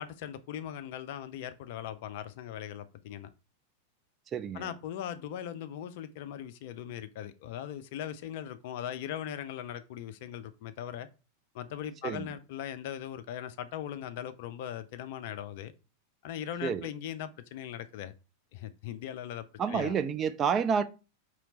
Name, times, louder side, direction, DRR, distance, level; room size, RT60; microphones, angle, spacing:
voice 1, 0.0-3.3 4.5-11.1 11.5-15.7 16.2-18.1 18.5-19.9, left 10 dB, 50° left, 0.4 m, -39 dB
voice 2, 4.3-4.7 12.0-12.3 16.6-16.9 19.6-20.8, right 6 dB, 25° right, 0.4 m, -29 dB
4.4 x 3.1 x 3.8 m
figure-of-eight pair, 90°, 0 cm